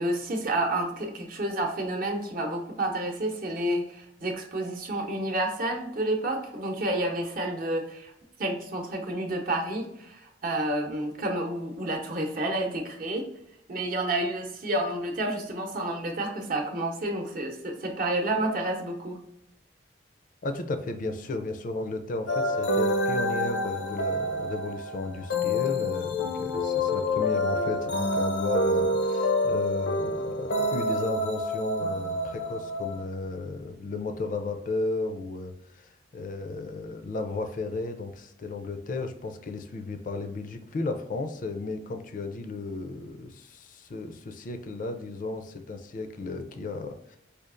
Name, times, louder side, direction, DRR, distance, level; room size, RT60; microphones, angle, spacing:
voice 1, 0.0-8.1 8.4-13.3 13.7-19.2, right 1 dB, 50° right, 2 dB, 0.7 m, -30 dB
voice 2, 20.4-47.2, left 3 dB, 50° left, 7 dB, 0.4 m, -34 dB
sound 1, 22.3-33.0, left 1 dB, 85° left, 0.6 m, -27 dB
5.0 x 2.4 x 2.4 m, 0.79 s
head